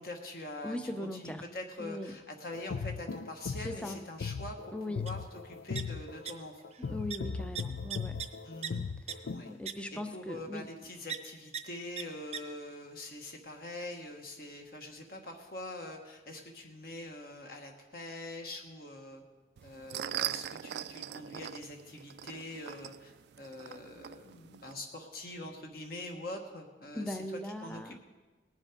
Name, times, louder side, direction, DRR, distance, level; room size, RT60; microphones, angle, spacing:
voice 1, 0.0-5.2 5.4-6.6 8.4-8.8 9.2-9.5 9.9-19.2 19.6-23.1 23.4-27.2 27.6-28.0, left 1 dB, 55° left, 3 dB, 1.2 m, -44 dB
voice 2, 0.6-1.4 1.8-2.2 3.5-4.0 4.7-5.1 6.8-8.2 9.5-10.7 26.9-28.0, left 1 dB, 5° left, 9 dB, 0.5 m, -39 dB
sound 1, 2.5-9.5, left 5 dB, 85° left, 0.4 m, -38 dB
sound 2, 5.1-5.2 5.4-6.3 6.6-6.8 7.1-7.2 7.6-8.7 9.1-9.2 9.7-9.8 11.1-11.2 11.5-11.6 12.0-12.1 12.3-12.4, right 8 dB, 35° right, 0.6 m, -38 dB
sound 3, 19.6-24.7, right 11 dB, 65° right, 0.3 m, -41 dB
19.0 x 7.4 x 5.0 m, 1.3 s
head